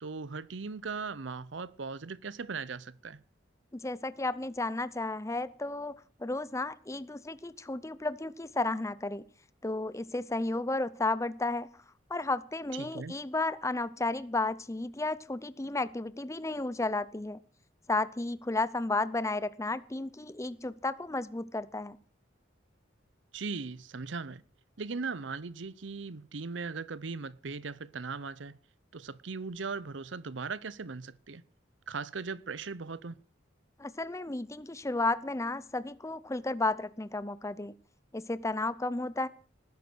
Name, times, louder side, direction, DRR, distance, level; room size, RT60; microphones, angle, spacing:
voice 1, 0.0-3.2 12.7-13.2 23.3-24.4 24.8-28.6 28.9-31.4 31.9-33.2, right 4 dB, 75° right, 0.7 m, -38 dB
voice 2, 3.7-5.9 6.2-9.2 9.6-11.7 12.1-17.4 17.9-22.0 33.8-37.7 38.1-39.3, left 2 dB, 15° left, 0.6 m, -33 dB
19.5 x 10.5 x 6.2 m
head